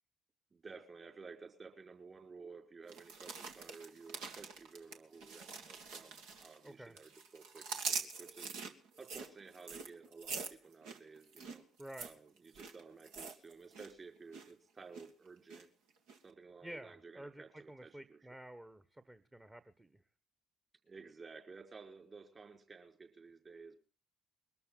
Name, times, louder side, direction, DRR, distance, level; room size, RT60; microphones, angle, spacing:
voice 1, 0.5-8.5 9.0-11.6 12.0-15.7 16.2-18.3 20.8-23.8, right 4 dB, 35° right, 4 dB, 5.1 m, -54 dB
sound 1, 2.9-6.7 7.0-13.9 14.2-14.5 14.9-15.6 16.1-16.2, right 5 dB, 65° right, 1.9 m, -45 dB
voice 2, 6.6-6.9 11.8-12.1 16.6-20.0, right 1 dB, 15° right, 11 dB, 1.3 m, -51 dB
22.0 x 13.5 x 3.9 m, 0.37 s
figure-of-eight pair, 50°, 0 cm